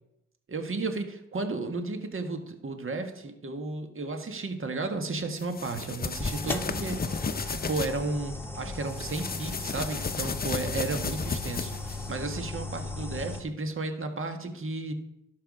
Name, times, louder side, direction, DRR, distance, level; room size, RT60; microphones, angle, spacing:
voice 1, 0.5-7.1 7.7-14.9, right 3 dB, 40° right, 6 dB, 1.5 m, -33 dB
sound 1, 5.4-7.9 8.9-12.1, left 5 dB, 30° left, 0.8 m, -33 dB
sound 2, 6.2-13.4, left 2 dB, 5° left, 1.4 m, -37 dB
11.5 x 6.9 x 4.9 m, 0.86 s
cardioid pair, 60°, 32 cm